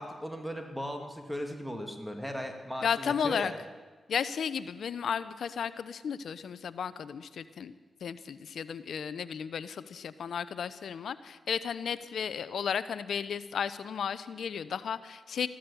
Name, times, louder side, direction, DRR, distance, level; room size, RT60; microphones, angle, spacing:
voice 1, 0.0-3.6, equal, ahead, 4 dB, 2.3 m, -37 dB
voice 2, 2.8-3.5 4.1-7.7 8.0-15.5, left 7 dB, 75° left, 15 dB, 0.7 m, -34 dB
15.0 x 12.5 x 7.0 m, 1.3 s
supercardioid pair, 50°, 0 cm